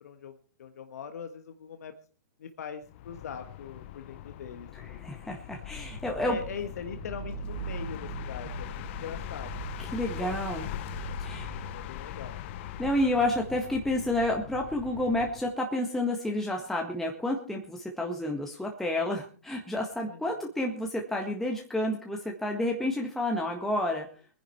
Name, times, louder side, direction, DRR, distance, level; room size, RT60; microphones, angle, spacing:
voice 1, 0.0-1.9 2.4-5.0 6.2-10.4 10.7-11.1 11.5-12.4 20.0-20.3, left 7 dB, 70° left, 7 dB, 1.6 m, -42 dB
sound 1, 2.8-15.5, left 14 dB, 45° left, 0.9 m, -42 dB
voice 2, 4.7-6.4 9.8-10.6 11.2-11.6 12.8-24.1, left 1 dB, 5° left, 0 dB, 1.7 m, -30 dB
sound 2, 5.6-15.4, right 4 dB, 20° left, 2.2 m, -43 dB
23.0 x 10.5 x 4.5 m, 0.40 s
hypercardioid pair, 140°, 9 cm